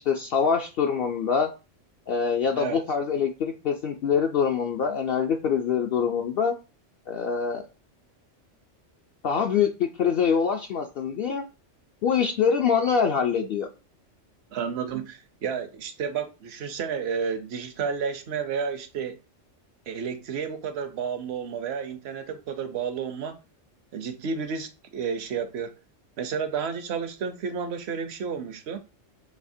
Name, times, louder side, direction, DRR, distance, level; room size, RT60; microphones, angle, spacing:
voice 1, 0.0-1.5 2.1-6.5 7.1-7.7 9.2-11.5 12.0-13.7, left 6 dB, 60° left, 0.7 m, -24 dB
voice 2, 14.5-19.2 19.9-23.4 23.9-25.7 26.2-28.8, right 6 dB, 65° right, 0.9 m, -31 dB
6.4 x 2.8 x 2.6 m
omnidirectional pair, 1.3 m